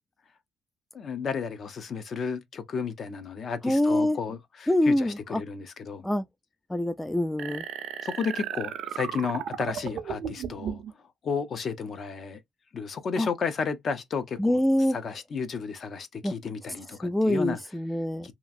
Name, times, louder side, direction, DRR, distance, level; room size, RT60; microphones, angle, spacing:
voice 1, 0.9-6.0 8.0-10.8 11.2-12.4 12.7-14.6 14.9-17.6 18.2-18.3, left 5 dB, 45° left, 0.6 m, -33 dB
voice 2, 3.6-4.2 4.7-5.4 6.0-6.2 6.7-7.6 13.2-13.3 14.4-15.0 16.2-16.3 17.0-18.3, left 1 dB, 5° left, 0.3 m, -25 dB
sound 1, 7.4-10.9, right 8 dB, 70° right, 0.5 m, -35 dB
2.9 x 2.4 x 2.5 m
cardioid pair, 115°, 0 cm